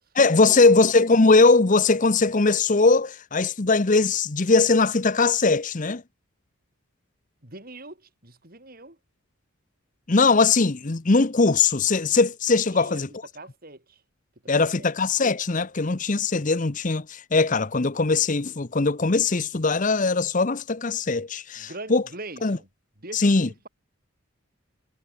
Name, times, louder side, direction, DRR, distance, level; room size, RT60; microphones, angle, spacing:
voice 1, 0.2-6.0 10.1-13.1 14.5-22.0 22.4-22.6 23.1-23.5, left 3 dB, 40° left, 0.8 m, -20 dB
voice 2, 7.4-9.0 12.7-13.0 13.3-14.0 14.5-14.9 21.6-22.7 23.0-23.7, right 2 dB, 45° right, 4.7 m, -42 dB
head